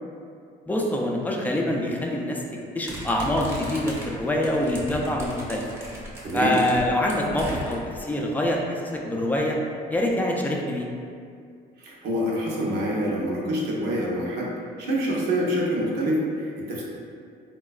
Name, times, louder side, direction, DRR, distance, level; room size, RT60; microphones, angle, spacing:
voice 1, 0.7-2.4 2.7-5.7 6.3-9.6 9.9-10.9, left 1 dB, 10° left, -1 dB, 0.3 m, -25 dB
sound 1, 2.9-8.0, equal, 15° right, 0.7 m, -37 dB
voice 2, 6.2-6.6 11.8-14.5 14.8-16.8, equal, 75° right, -4 dB, 0.7 m, -26 dB
3.7 x 2.2 x 2.3 m, 2.3 s
cardioid pair, 110°, 17 cm